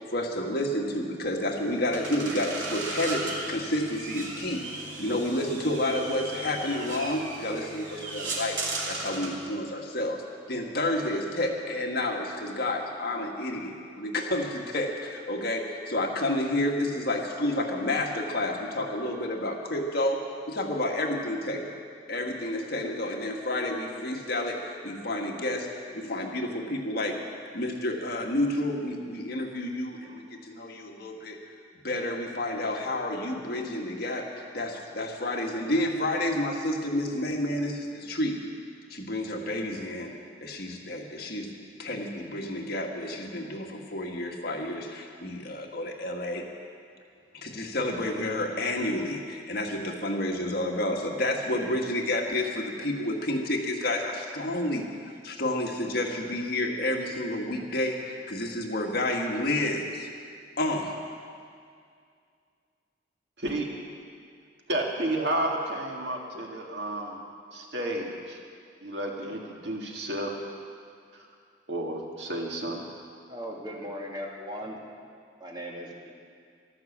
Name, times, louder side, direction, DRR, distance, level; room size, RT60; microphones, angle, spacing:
voice 1, 0.1-4.6 5.0-8.6 8.9-10.2 10.5-20.2 20.5-21.7 22.1-27.1 27.5-31.4 31.8-38.4 38.9-40.1 40.4-41.5 41.8-46.4 47.3-54.9 55.2-60.1 60.6-61.0, left 1 dB, 55° left, 1 dB, 1.7 m, -30 dB
sound 1, 1.3-9.4, right 2 dB, 85° right, 2.8 m, -36 dB
voice 2, 64.7-67.2 67.5-68.4 68.8-70.3 71.1-71.3 71.7-72.8, right 1 dB, 65° right, 0 dB, 2.1 m, -31 dB
voice 3, 73.3-74.8 75.4-76.1, equal, 25° right, -1 dB, 2.2 m, -38 dB
14.0 x 12.0 x 7.3 m, 2.2 s
head